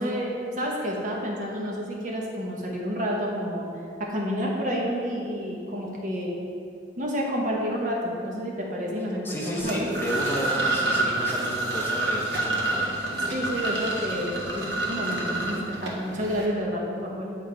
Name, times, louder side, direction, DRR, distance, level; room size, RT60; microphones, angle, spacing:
voice 1, 0.0-3.6 4.1-6.3 7.0-10.0 13.3-17.4, equal, 45° right, -2 dB, 1.0 m, -29 dB
voice 2, 9.2-12.8, equal, 10° left, -2 dB, 0.6 m, -32 dB
sound 1, 9.6-16.5, right 2 dB, 75° right, 1.1 m, -28 dB
8.4 x 3.7 x 4.5 m, 2.4 s
head